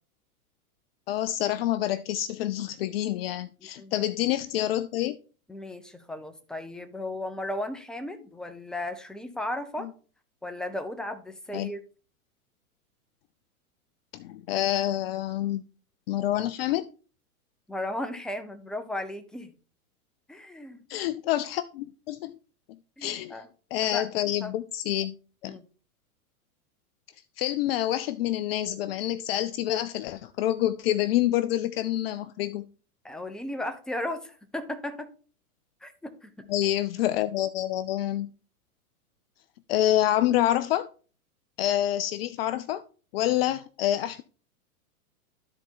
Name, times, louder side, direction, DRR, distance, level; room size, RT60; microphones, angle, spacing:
voice 1, 1.1-5.2 9.8-9.9 11.5-11.7 14.1-15.7 16.1-16.9 20.9-22.4 23.0-23.4 23.7-25.2 25.4-25.6 27.4-32.7 36.5-38.3 39.7-40.9 41.6-42.8 43.1-44.2, left 13 dB, 45° left, 0.4 m, -27 dB
voice 2, 3.6-4.1 5.5-9.9 10.4-11.8 17.7-19.5 20.3-20.8 23.0-23.5 23.9-24.1 24.4-24.5 25.5-25.6 33.0-35.1 35.8-36.4, left 1 dB, ahead, 0.8 m, -35 dB
12.5 x 4.3 x 3.7 m
hypercardioid pair, 110°, 44 cm